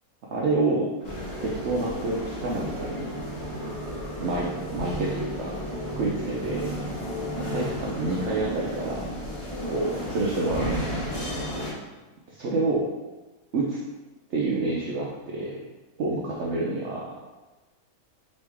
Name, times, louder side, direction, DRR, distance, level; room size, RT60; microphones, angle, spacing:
voice 1, 0.3-0.9 1.4-3.2 4.2-5.6 5.9-6.7 7.4-9.0 9.7-10.8 12.3-12.9 13.5-13.8 14.3-15.6 16.0-17.2, right 3 dB, 60° right, -4 dB, 0.8 m, -28 dB
sound 1, 1.0-11.7, equal, 25° left, 0.9 m, -33 dB
4.1 x 3.1 x 3.5 m, 1.2 s
omnidirectional pair, 1.5 m